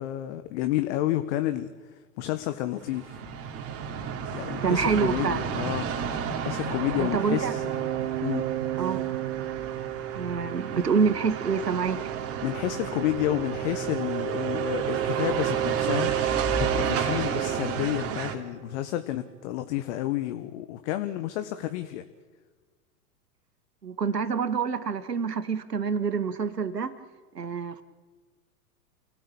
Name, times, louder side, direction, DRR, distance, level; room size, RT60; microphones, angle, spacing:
voice 1, 0.0-3.2 4.3-5.9 6.4-7.7 8.2-8.5 12.4-22.0, left 14 dB, 45° left, 9 dB, 1.6 m, -30 dB
sound 1, 2.7-18.3, right 6 dB, 30° right, 3.4 m, -32 dB
voice 2, 4.6-5.4 7.0-7.5 8.8-9.0 10.1-12.0 23.8-27.0 27.3-27.8, right 6 dB, 85° right, 11 dB, 2.2 m, -27 dB
sound 2, 7.1-18.7, right 13 dB, 55° right, 0.8 m, -32 dB
29.0 x 18.0 x 8.8 m, 1.4 s
figure-of-eight pair, 105°, 47 cm